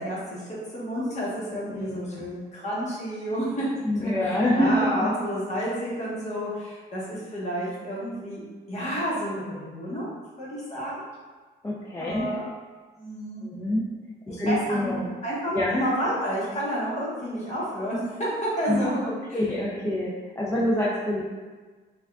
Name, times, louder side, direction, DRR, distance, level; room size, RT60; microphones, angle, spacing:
voice 1, 0.0-8.4 8.7-10.1 10.4-11.0 12.0-12.4 13.0-13.5 14.3-19.4, equal, 35° left, -7 dB, 1.1 m, -30 dB
voice 2, 1.7-2.3 3.8-5.1 11.6-12.3 13.4-13.9 14.3-15.1 15.5-15.8 18.7-21.2, left 1 dB, 15° left, -6 dB, 0.4 m, -26 dB
3.4 x 2.3 x 2.3 m, 1.4 s
cardioid pair, 90°, 20 cm